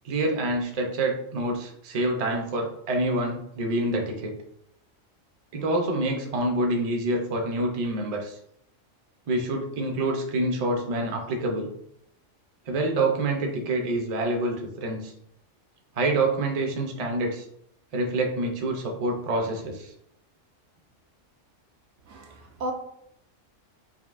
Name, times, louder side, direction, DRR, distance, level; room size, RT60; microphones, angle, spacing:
voice 1, 0.0-4.3 5.5-8.4 9.3-11.7 12.7-15.1 16.0-17.4 17.9-19.9, right 2 dB, 40° right, 0.6 m, -27 dB
voice 2, 22.1-22.7, right 1 dB, 70° right, 1.0 m, -34 dB
5.3 x 2.7 x 2.5 m
omnidirectional pair, 1.3 m